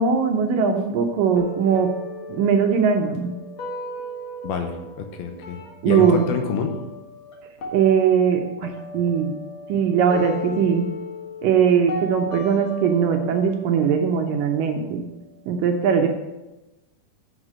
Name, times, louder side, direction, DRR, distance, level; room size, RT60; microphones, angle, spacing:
voice 1, 0.0-1.9 2.3-3.4 5.8-6.3 7.7-9.3 9.7-10.8 11.4-15.0 15.5-16.1, right 7 dB, 75° right, 3 dB, 2.2 m, -20 dB
sound 1, 1.4-7.3 7.6-15.4, left 1 dB, 50° left, 1.6 m, -36 dB
voice 2, 4.4-5.6 5.8-6.8, left 5 dB, 80° left, 5 dB, 2.8 m, -27 dB
7.3 x 6.5 x 7.5 m, 1.0 s
omnidirectional pair, 4.4 m